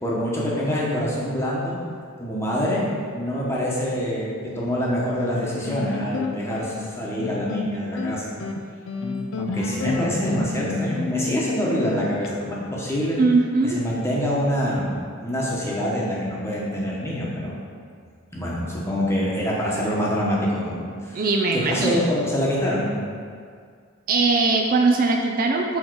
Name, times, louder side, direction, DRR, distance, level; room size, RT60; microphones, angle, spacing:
voice 1, 0.0-1.8 2.2-2.8 3.1-8.2 9.4-13.2 13.6-17.6 18.3-21.2 21.5-22.9, equal, 15° left, -6 dB, 1.0 m, -25 dB
sound 1, 5.3-12.3, left 4 dB, 75° left, 0.5 m, -30 dB
voice 2, 13.2-13.8 21.1-22.0 24.1-25.8, right 3 dB, 45° right, 2 dB, 0.4 m, -20 dB
6.3 x 3.7 x 4.6 m, 2.1 s
head